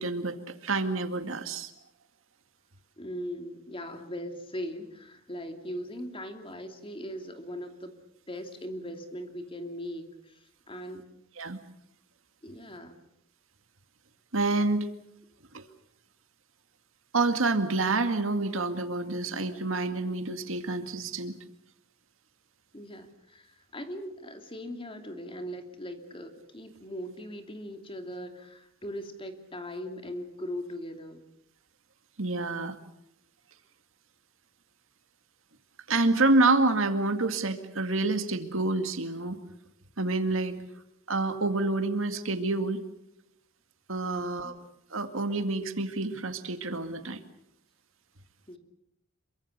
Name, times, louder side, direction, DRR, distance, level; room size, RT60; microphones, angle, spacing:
voice 1, 0.0-1.7 11.4-11.6 14.3-14.9 15.5-15.6 17.1-21.4 32.2-32.8 35.9-39.4 40.0-40.6 41.1-42.8 43.9-44.5 44.9-47.2, right 3 dB, 70° right, 8 dB, 2.1 m, -28 dB
voice 2, 3.0-8.0 8.3-11.0 12.4-13.0 22.7-31.2 40.5-40.7 44.0-44.5 48.5-48.6, equal, 25° left, 6 dB, 2.8 m, -40 dB
27.5 x 23.5 x 6.8 m, 0.80 s
head